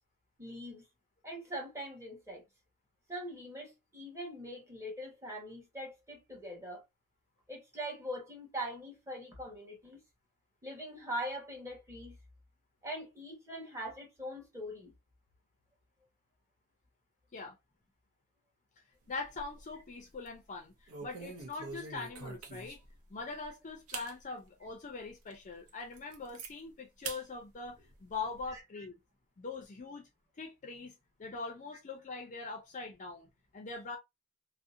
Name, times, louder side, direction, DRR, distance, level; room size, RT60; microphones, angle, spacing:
voice 1, 0.4-0.8 1.2-2.4 3.1-6.8 7.5-10.0 10.6-12.2 12.8-14.9 28.5-28.6, equal, 15° right, 1.0 m, -42 dB
voice 2, 19.1-20.7 21.0-22.8 23.1-29.0 29.4-30.1 30.4-30.9 31.2-34.0, left 4 dB, 35° left, 0.4 m, -42 dB
sound 1, 19.1-19.8 20.1-20.4 20.9-23.0 23.4-23.5 23.9-24.1 24.7-24.8 25.3-25.4 25.7-26.5 27.0-27.2 27.6-28.5, right 4 dB, 80° right, 0.6 m, -45 dB
2.7 x 2.0 x 2.4 m
head